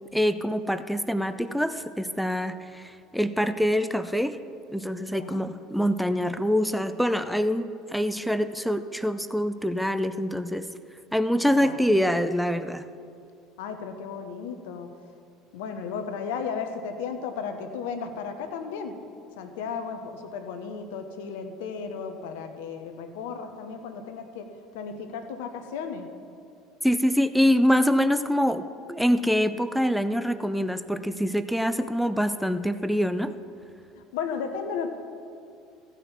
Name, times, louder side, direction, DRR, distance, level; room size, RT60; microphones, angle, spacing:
voice 1, 0.1-4.4 4.7-10.7 11.1-12.8 26.8-33.3, equal, ahead, 11 dB, 0.5 m, -25 dB
voice 2, 5.1-5.4 11.5-11.8 13.6-14.9 15.5-18.9 19.4-24.5 24.7-26.1 33.9-34.9, left 6 dB, 70° left, 7 dB, 1.0 m, -34 dB
15.0 x 5.8 x 7.1 m, 2.5 s
hypercardioid pair, 65°, 0 cm